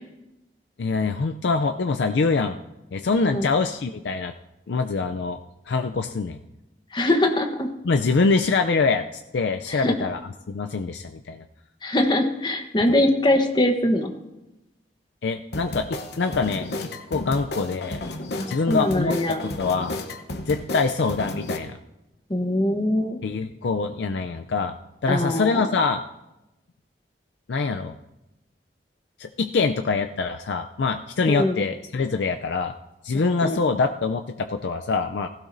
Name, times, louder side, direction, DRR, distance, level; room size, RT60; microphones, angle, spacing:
voice 1, 0.8-2.6 2.9-4.3 4.7-5.4 5.7-6.4 7.8-9.0 9.3-10.2 10.5-11.4 15.2-18.0 18.5-20.0 20.4-21.8 23.2-24.8 25.0-26.0 27.5-27.9 29.2-32.7 33.0-35.3, left 4 dB, 85° left, 6 dB, 0.5 m, -24 dB
voice 2, 6.9-7.7 9.7-9.9 11.8-14.1 18.4-19.4 22.3-23.2 25.1-25.6 31.3-31.6 33.4-33.6, left 1 dB, 25° left, 5 dB, 1.1 m, -22 dB
sound 1, 15.5-21.6, left 2 dB, 70° left, 0.9 m, -32 dB
16.0 x 16.0 x 2.7 m, 0.95 s
head